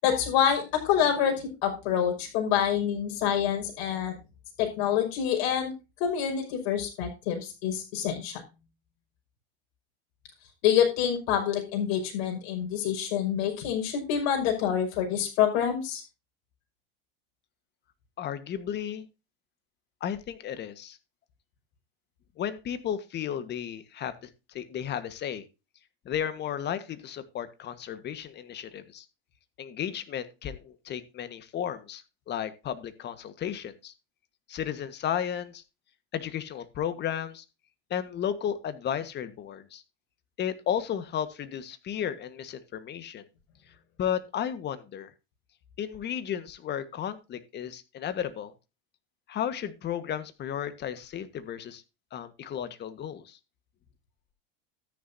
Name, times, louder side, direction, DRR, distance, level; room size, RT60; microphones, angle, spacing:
voice 1, 0.0-4.1 4.6-5.7 6.0-8.4 10.6-16.0, left 9 dB, 65° left, 1 dB, 5.8 m, -27 dB
voice 2, 18.2-19.1 20.0-21.0 22.4-24.1 24.5-25.4 26.0-29.0 29.6-33.9 34.5-35.6 36.1-37.4 37.9-39.8 40.4-43.3 44.0-45.1 45.8-48.5 49.3-51.8 52.1-53.4, left 9 dB, 35° left, 12 dB, 1.5 m, -34 dB
13.5 x 10.0 x 2.8 m, 0.28 s
supercardioid pair, 125°, 31 cm